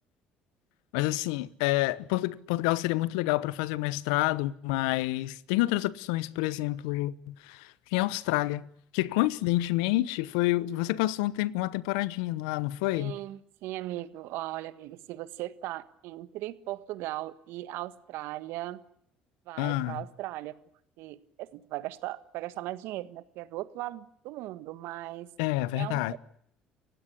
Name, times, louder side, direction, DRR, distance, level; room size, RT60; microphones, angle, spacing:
voice 1, 0.9-8.7 8.9-13.2 19.6-20.0 25.4-26.2, left 17 dB, 80° left, 0.9 m, -28 dB
voice 2, 12.9-18.8 19.5-20.6 21.0-25.3 25.7-26.2, right 16 dB, 70° right, 1.5 m, -38 dB
29.0 x 16.0 x 10.0 m
hypercardioid pair, 60°, 4 cm